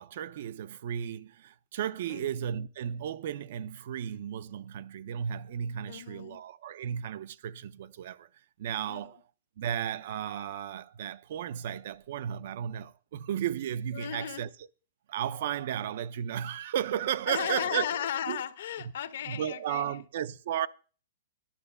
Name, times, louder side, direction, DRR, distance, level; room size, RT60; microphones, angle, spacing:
voice 1, 0.0-8.3 8.6-9.2 9.6-14.5 15.1-17.9 18.3-18.4 19.3-20.7, right 9 dB, 55° right, 0.5 m, -34 dB
voice 2, 5.9-6.4 8.9-9.1 12.4-12.5 13.9-14.5 17.3-20.0, left 9 dB, 65° left, 1.0 m, -35 dB
10.0 x 6.8 x 6.7 m
hypercardioid pair, 160°, 0 cm